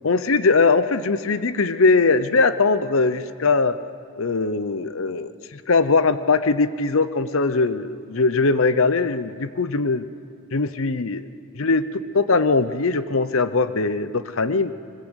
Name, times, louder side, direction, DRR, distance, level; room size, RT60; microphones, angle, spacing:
voice 1, 0.0-3.8 4.2-10.1 10.5-11.3 11.5-14.7, left 3 dB, 65° left, 12 dB, 0.8 m, -21 dB
21.5 x 21.5 x 8.2 m, 2.4 s
head